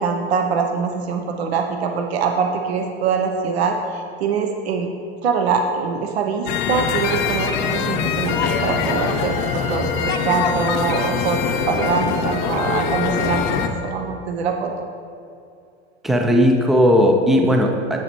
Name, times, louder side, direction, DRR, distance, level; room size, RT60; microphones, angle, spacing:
voice 1, 0.0-4.9 5.2-14.9, right 5 dB, 80° right, 3 dB, 0.8 m, -23 dB
sound 1, 6.5-13.7, left 6 dB, 50° left, 0.7 m, -23 dB
Wind instrument woodwind instrument, 8.9-14.1, right 2 dB, 40° right, 1.8 m, -35 dB
voice 2, 16.0-18.0, equal, ahead, 3 dB, 0.3 m, -16 dB
8.7 x 6.5 x 3.0 m, 2.5 s
hypercardioid pair, 125°, 31 cm